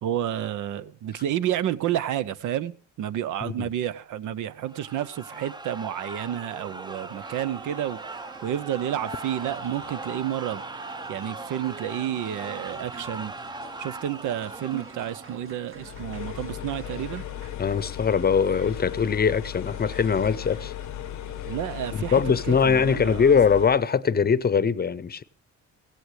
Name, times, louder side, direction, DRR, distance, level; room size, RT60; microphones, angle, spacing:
voice 1, 0.0-2.7 3.0-8.0 8.4-10.6 11.1-13.3 13.8-17.2 21.5-22.2 22.5-23.2, right 11 dB, 80° right, 0.7 m, -30 dB
sound 1, 4.6-15.6, right 2 dB, 15° right, 0.6 m, -39 dB
sound 2, 7.1-22.5, right 5 dB, 45° right, 1.8 m, -47 dB
sound 3, 15.7-23.8, left 12 dB, 70° left, 0.7 m, -36 dB
voice 2, 17.6-20.7 21.9-25.2, left 6 dB, 30° left, 0.7 m, -22 dB
17.0 x 16.0 x 3.2 m
cardioid pair, 90°, 30 cm